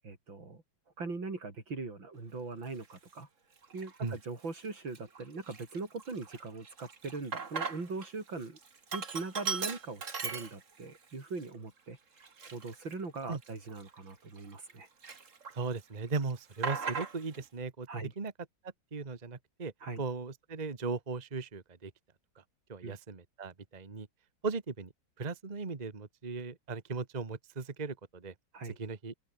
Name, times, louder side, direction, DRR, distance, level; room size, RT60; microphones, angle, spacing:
voice 1, 0.0-0.6 1.0-3.3 3.7-8.6 8.9-12.0 12.5-14.9 17.9-18.1 19.8-20.0 22.8-22.9 28.5-28.8, right 3 dB, 75° right, 5.5 m, -41 dB
Sink (filling or washing), 2.8-3.0 3.6-4.2 4.6-4.7 4.9-8.1 8.4-11.0 11.4-11.5 12.2-14.7 15.0-15.8 16.1-17.4, right 5 dB, 40° right, 2.3 m, -39 dB
voice 2, 15.5-17.9 18.2-18.3 18.6-19.7 20.0-21.9 22.4-22.5 22.7-24.1 24.4-24.9 25.2-28.3 28.8-29.1, right 4 dB, 25° right, 1.4 m, -37 dB
open air
omnidirectional pair, 2.1 m